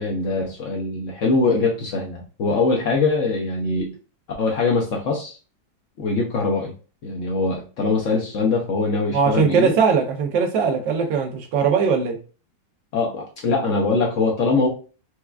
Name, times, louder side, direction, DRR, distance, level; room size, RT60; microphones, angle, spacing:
voice 1, 0.0-4.0 4.4-5.4 6.0-6.7 7.0-9.8 12.9-14.7, left 3 dB, 70° left, 0.7 m, -22 dB
voice 2, 9.1-12.2, right 6 dB, 80° right, 1.4 m, -20 dB
4.6 x 2.2 x 2.3 m
omnidirectional pair, 2.0 m